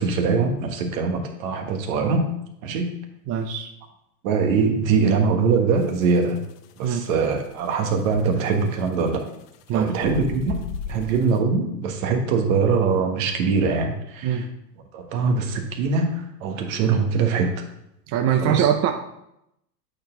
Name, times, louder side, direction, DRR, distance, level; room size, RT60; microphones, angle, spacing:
voice 1, 0.0-2.3 2.6-2.9 4.2-6.4 6.8-9.2 9.7-10.6 10.9-14.4 14.9-17.6 18.4-18.7, right 5 dB, 60° right, 5 dB, 1.5 m, -22 dB
voice 2, 3.3-3.7 6.8-7.1 9.7-9.9 14.2-14.5 18.1-18.9, right 9 dB, 35° right, 6 dB, 0.6 m, -22 dB
sound 1, 5.8-11.4, left 5 dB, 75° left, 0.8 m, -36 dB
8.4 x 4.6 x 3.8 m, 0.80 s
hypercardioid pair, 110°, 46 cm